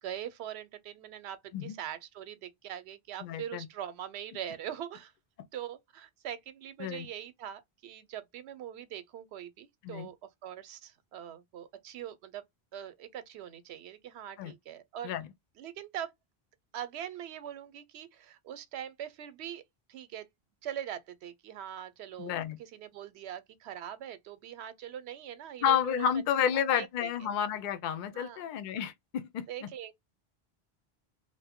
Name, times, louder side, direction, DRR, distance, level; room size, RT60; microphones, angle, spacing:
voice 1, 0.0-5.1 5.5-10.2 10.4-12.4 12.7-15.1 15.6-16.1 16.7-19.6 19.9-20.3 20.6-22.3 22.6-26.1 26.4-27.3 28.1-28.5 29.5-29.9, right 10 dB, 90° right, 0.8 m, -42 dB
voice 2, 3.2-3.7 6.8-7.1 9.8-10.1 14.4-14.5 15.0-15.3 22.2-22.6 25.6-29.7, left 9 dB, 60° left, 0.6 m, -31 dB
2.7 x 2.0 x 3.5 m
omnidirectional pair, 1.1 m